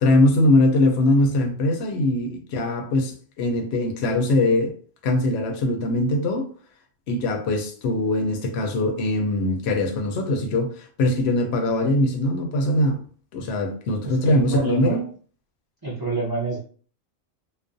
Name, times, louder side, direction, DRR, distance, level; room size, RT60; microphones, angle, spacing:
voice 1, 0.0-4.7 5.0-6.5 7.1-13.0 13.3-15.0, left 1 dB, 65° left, 0.8 m, -21 dB
voice 2, 14.0-15.1 15.8-16.6, right 3 dB, 25° right, 0.5 m, -28 dB
2.4 x 2.1 x 2.5 m
omnidirectional pair, 1.2 m